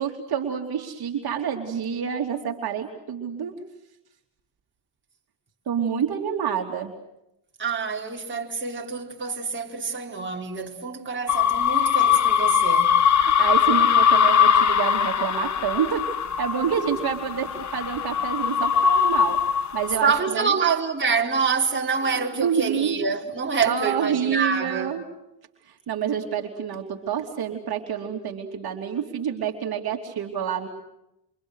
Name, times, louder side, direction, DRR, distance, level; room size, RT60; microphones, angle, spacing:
voice 1, 0.0-3.6 5.7-6.9 13.2-16.1 16.4-19.4 19.7-20.5 22.0-23.0 23.6-25.0 25.6-30.7, right 8 dB, 60° right, 3.2 m, -28 dB
voice 2, 7.6-13.0 20.0-24.9, right 5 dB, 25° right, 4.5 m, -26 dB
sound 1, 11.3-20.2, left 8 dB, 40° left, 1.3 m, -21 dB
28.5 x 27.5 x 6.5 m
cardioid pair, 90°, 43 cm